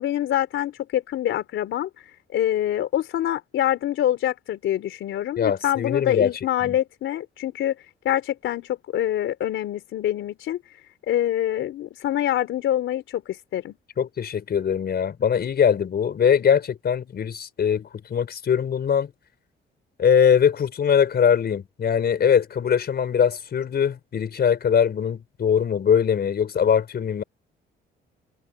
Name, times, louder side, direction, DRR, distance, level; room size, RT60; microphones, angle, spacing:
voice 1, 0.0-7.7 8.0-10.8 11.1-13.8, left 12 dB, 80° left, 3.8 m, -25 dB
voice 2, 5.4-6.3 6.6-6.7 14.0-19.1 20.0-27.2, left 7 dB, 55° left, 4.9 m, -21 dB
cardioid pair, 90°, 20 cm